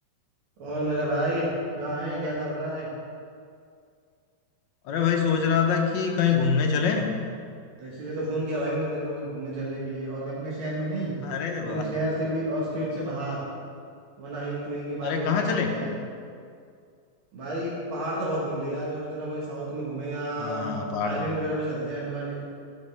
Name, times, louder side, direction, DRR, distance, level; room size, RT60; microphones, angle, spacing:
voice 1, 0.6-1.5 1.7-2.9 7.8-11.2 11.6-13.5 14.2-15.9 17.3-20.6 21.0-22.4, right 1 dB, 90° right, -6 dB, 2.0 m, -30 dB
voice 2, 4.8-7.1 11.2-11.8 15.0-15.7 20.4-21.3, left 6 dB, 70° left, 3 dB, 1.3 m, -25 dB
11.0 x 4.4 x 3.2 m, 2.3 s
omnidirectional pair, 2.2 m